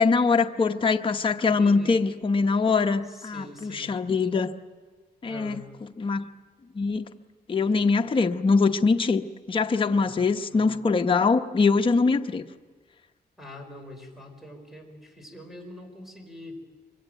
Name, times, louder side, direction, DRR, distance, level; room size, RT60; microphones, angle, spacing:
voice 1, 0.0-4.5 5.2-5.6 6.0-6.3 6.7-7.1 7.5-9.2 9.5-12.4, left 4 dB, 30° left, 4 dB, 0.9 m, -23 dB
voice 2, 1.6-2.0 3.0-4.0 5.3-5.7 9.9-10.7 13.4-16.6, left 1 dB, ahead, 4 dB, 5.2 m, -44 dB
25.0 x 23.0 x 9.1 m, 1.4 s
wide cardioid pair, 120°, 17 cm